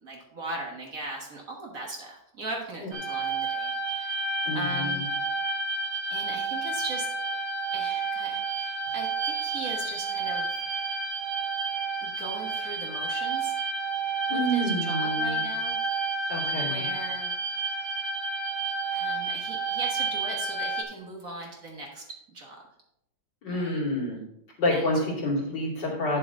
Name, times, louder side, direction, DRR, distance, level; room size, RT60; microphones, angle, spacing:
voice 1, 0.0-5.1 6.1-7.1 7.7-10.6 12.0-13.5 14.3-15.8 16.6-17.4 18.9-22.6 23.5-23.8 24.7-24.9, right 2 dB, 45° right, 0 dB, 1.8 m, -39 dB
sound 1, 2.9-20.8, right 3 dB, 80° right, 1.9 m, -30 dB
voice 2, 4.4-5.1 14.3-15.4 16.3-16.9 23.4-24.2 24.6-26.2, left 1 dB, 65° left, -4 dB, 3.3 m, -28 dB
9.7 x 7.2 x 3.8 m, 0.79 s
omnidirectional pair, 2.1 m